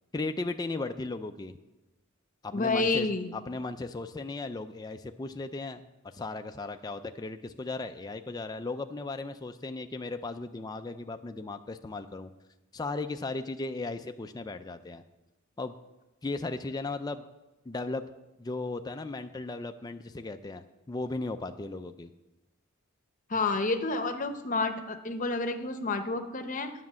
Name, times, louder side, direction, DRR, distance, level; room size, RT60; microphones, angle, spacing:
voice 1, 0.1-1.6 2.4-12.3 12.7-15.0 15.6-15.8 16.2-17.2 17.7-18.0 18.4-22.1, left 3 dB, 20° left, 7 dB, 0.4 m, -36 dB
voice 2, 2.5-3.3 23.3-26.7, left 3 dB, 40° left, 7 dB, 0.8 m, -29 dB
9.5 x 5.9 x 7.5 m, 1.0 s
head